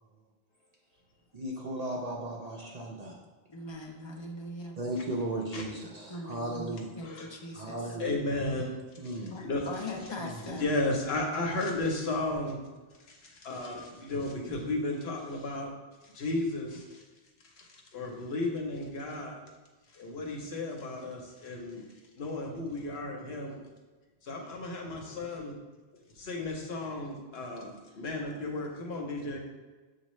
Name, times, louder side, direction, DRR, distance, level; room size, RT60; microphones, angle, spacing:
voice 1, 1.3-3.2 4.8-6.9 7.5-8.2 9.0-9.3 10.2-10.6, right 1 dB, 50° right, -2 dB, 0.5 m, -36 dB
voice 2, 3.5-4.8 6.1-8.0 9.3-10.7, left 2 dB, 35° left, 1 dB, 0.5 m, -41 dB
voice 3, 8.0-8.8 9.0-9.1 9.4-9.6 10.6-12.6 13.1-15.7 16.0-17.0 17.5-19.4 19.9-21.8 22.1-23.6 24.2-25.5 26.1-29.4, left 2 dB, 75° left, 0 dB, 1.0 m, -34 dB
7.1 x 2.4 x 3.1 m, 1.2 s
omnidirectional pair, 1.1 m